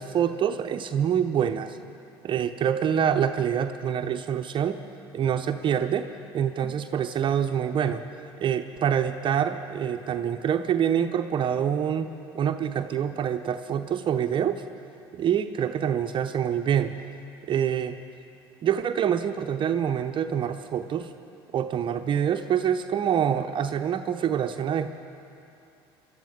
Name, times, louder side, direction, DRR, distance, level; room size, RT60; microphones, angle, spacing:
voice 1, 0.0-1.8 2.2-4.8 5.1-6.1 6.3-8.0 8.4-14.6 15.1-17.0 17.5-18.0 18.6-21.1 21.5-24.9, right 8 dB, 40° right, 8 dB, 0.7 m, -26 dB
25.0 x 12.5 x 3.7 m, 2.8 s
hypercardioid pair, 70°, 13 cm